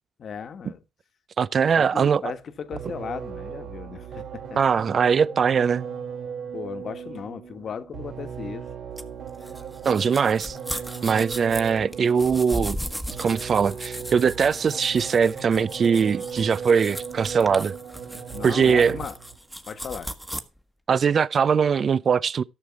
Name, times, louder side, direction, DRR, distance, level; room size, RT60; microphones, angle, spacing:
voice 1, 0.2-0.8 1.8-4.6 6.5-8.7 18.3-19.1 19.7-20.1, left 6 dB, 55° left, 1.3 m, -36 dB
voice 2, 1.4-2.2 4.6-5.9 9.8-12.8 13.2-17.7 18.4-19.0 20.9-22.4, right 6 dB, 50° right, 0.5 m, -21 dB
sound 1, 2.7-19.4, right 7 dB, 70° right, 3.3 m, -37 dB
sound 2, 9.0-20.4, equal, 5° right, 1.3 m, -37 dB
13.5 x 6.6 x 4.6 m
cardioid pair, 90°, 0 cm